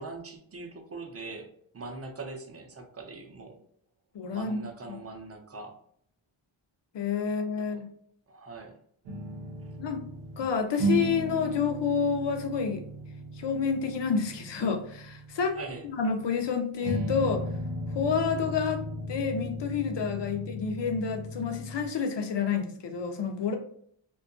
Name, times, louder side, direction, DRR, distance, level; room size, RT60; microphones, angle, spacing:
voice 1, 0.0-3.6 4.3-5.8 7.3-7.8 8.3-8.8 15.5-15.9, right 3 dB, 30° right, 4 dB, 0.5 m, -42 dB
voice 2, 4.1-4.6 4.9-5.0 6.9-7.9 9.8-10.1 10.4-12.8 13.4-15.6 15.8-17.4 17.9-23.6, left 6 dB, 60° left, 6 dB, 0.5 m, -29 dB
sound 1, 9.0-10.5 10.8-16.5 16.8-21.9, right 1 dB, 85° right, 0.7 m, -35 dB
2.7 x 2.3 x 2.5 m, 0.65 s
wide cardioid pair, 120°, 50 cm